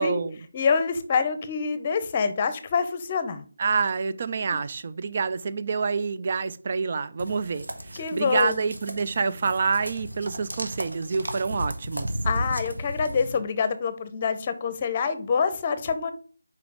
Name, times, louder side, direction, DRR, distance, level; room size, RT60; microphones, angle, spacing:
voice 1, 0.0-0.4 3.6-12.1, right 5 dB, 40° right, 0.5 m, -27 dB
voice 2, 0.5-3.4 4.5-4.6 8.0-8.5 12.2-16.1, left 5 dB, 30° left, 0.7 m, -26 dB
sound 1, 7.2-13.4, equal, 90° right, 1.3 m, -34 dB
4.9 x 4.7 x 4.9 m
figure-of-eight pair, 165°, 0 cm